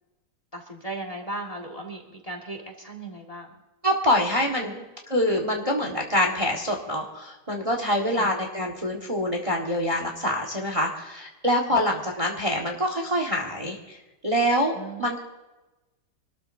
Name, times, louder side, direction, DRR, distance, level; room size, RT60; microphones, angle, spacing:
voice 1, 0.5-3.5 4.6-4.8 5.8-6.0 8.1-8.3 14.7-15.1, right 2 dB, 20° left, 3 dB, 1.8 m, -37 dB
voice 2, 3.8-4.7 5.1-14.0 14.2-14.7 15.0-15.2, equal, 20° right, 1 dB, 1.5 m, -25 dB
25.0 x 13.0 x 2.6 m, 1.1 s
omnidirectional pair, 1.8 m